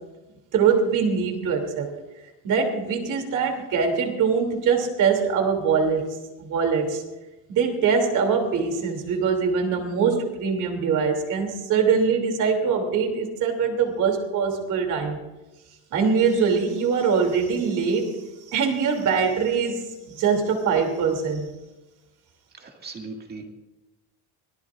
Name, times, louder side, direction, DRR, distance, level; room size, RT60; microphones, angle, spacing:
voice 1, 0.5-1.9 2.4-6.1 6.4-7.0 7.5-15.2 15.9-21.5, right 6 dB, 50° right, 3 dB, 3.1 m, -23 dB
voice 2, 22.5-23.5, right 3 dB, 25° right, 2 dB, 2.1 m, -38 dB
25.5 x 18.0 x 2.6 m, 1.1 s
cardioid pair, 150°, 38 cm